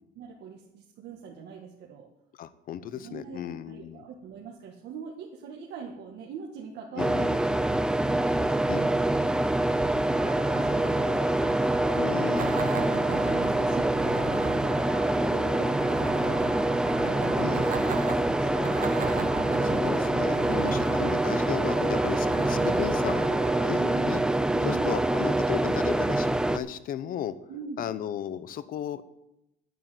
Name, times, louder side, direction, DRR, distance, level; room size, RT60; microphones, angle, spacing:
voice 1, 0.2-2.1 2.9-7.5 7.9-14.6 14.9-16.6 17.0-19.1 20.5-20.9 23.8-24.1 24.5-25.0 27.5-27.9, right 6 dB, 60° right, -1 dB, 1.9 m, -43 dB
voice 2, 2.4-4.0 7.0-7.3 8.7-8.9 11.9-12.7 17.4-17.7 19.6-24.2 24.6-27.3 27.8-29.0, left 10 dB, 45° left, 15 dB, 0.9 m, -35 dB
sound 1, 7.0-26.6, right 1 dB, 5° right, 0.5 m, -25 dB
sound 2, 10.1-23.6, right 1 dB, 30° right, 2.6 m, -41 dB
sound 3, 12.4-24.5, right 8 dB, 45° right, 1.1 m, -39 dB
11.5 x 9.4 x 7.8 m, 0.87 s
cardioid pair, 165°, 20 cm